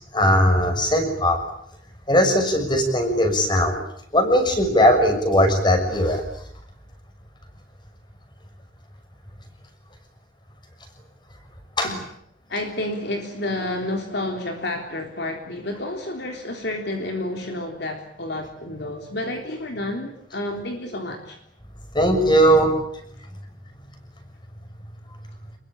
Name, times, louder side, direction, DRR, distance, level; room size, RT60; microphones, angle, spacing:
voice 1, 0.1-1.4 2.1-3.8 4.1-6.2 11.8-11.9 21.9-22.7, equal, 25° left, 6 dB, 6.4 m, -18 dB
voice 2, 12.5-21.4, left 1 dB, 55° left, 3 dB, 3.6 m, -30 dB
27.5 x 22.5 x 8.8 m, 0.72 s
head